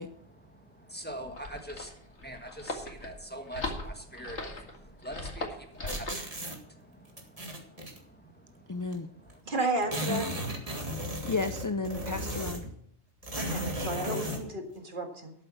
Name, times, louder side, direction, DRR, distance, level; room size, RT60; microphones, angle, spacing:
voice 1, 0.0-9.4, equal, 10° left, 4 dB, 1.5 m, -45 dB
sound 1, 1.1-6.3, left 2 dB, 85° left, 2.3 m, -39 dB
sound 2, 5.9-6.6 7.2-8.0 8.9-9.0 9.3-9.4 9.6-12.7 13.2-14.4, equal, 35° right, 1.9 m, -35 dB
voice 2, 8.7-9.1 10.1-10.2 11.2-12.6, left 3 dB, 30° left, 9 dB, 0.4 m, -32 dB
voice 3, 9.4-10.3 13.4-15.3, right 2 dB, 50° right, 4 dB, 2.0 m, -32 dB
13.0 x 7.8 x 6.2 m, 0.68 s
omnidirectional pair, 1.1 m